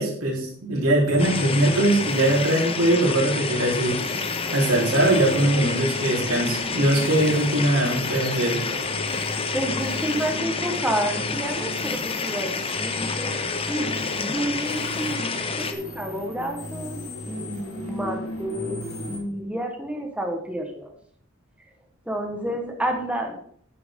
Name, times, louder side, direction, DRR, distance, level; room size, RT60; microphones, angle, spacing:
voice 1, 0.0-8.6, right 1 dB, 90° right, -2 dB, 3.8 m, -21 dB
sound 1, 1.0-19.2, left 1 dB, 90° left, 4.4 m, -36 dB
sound 2, 1.2-15.7, left 4 dB, 25° left, 0.8 m, -29 dB
voice 2, 9.0-13.4 13.7-18.8 19.1-20.9 22.0-23.4, right 1 dB, 5° right, 2 dB, 1.2 m, -30 dB
10.0 x 8.9 x 3.7 m, 0.62 s
head